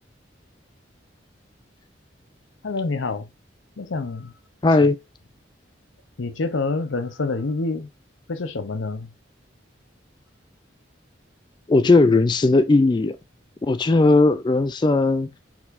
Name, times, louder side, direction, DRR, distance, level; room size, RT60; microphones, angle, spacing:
voice 1, 2.6-3.3 3.8-4.3 4.8-4.9 6.2-7.9 8.3-9.1, left 3 dB, 90° left, 0.7 m, -27 dB
voice 2, 4.6-5.0 11.7-13.2 13.6-15.3, left 3 dB, 25° left, 0.3 m, -17 dB
4.3 x 4.3 x 2.6 m
head